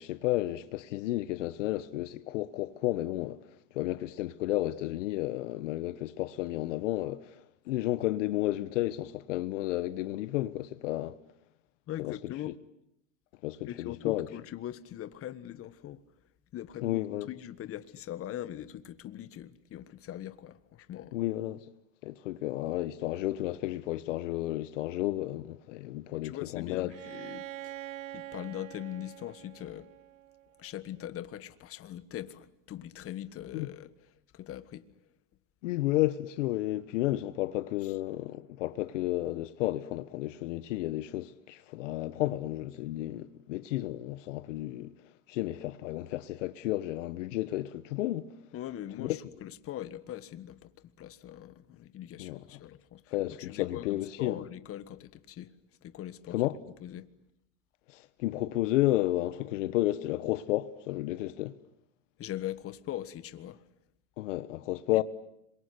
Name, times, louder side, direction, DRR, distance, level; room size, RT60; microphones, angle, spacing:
voice 1, 0.0-3.4 3.7-11.1 12.0-12.1 13.4-14.3 16.8-17.3 21.1-21.6 22.0-26.9 33.5-33.7 35.6-44.9 45.3-48.3 49.0-49.2 52.2-52.4 53.1-54.4 56.3-56.6 57.9-61.5 64.2-65.0, left 16 dB, 70° left, 1.2 m, -32 dB
voice 2, 11.9-12.5 13.6-16.0 16.5-21.2 26.1-27.8 28.1-29.9 30.6-34.9 37.8-37.9 48.5-55.5 55.8-56.4 56.8-57.1 62.2-63.6 64.9-65.0, left 12 dB, 35° left, 1.6 m, -41 dB
Bowed string instrument, 26.9-30.7, right 14 dB, 85° right, 1.2 m, -45 dB
26.5 x 23.0 x 9.6 m
hypercardioid pair, 110°, 38 cm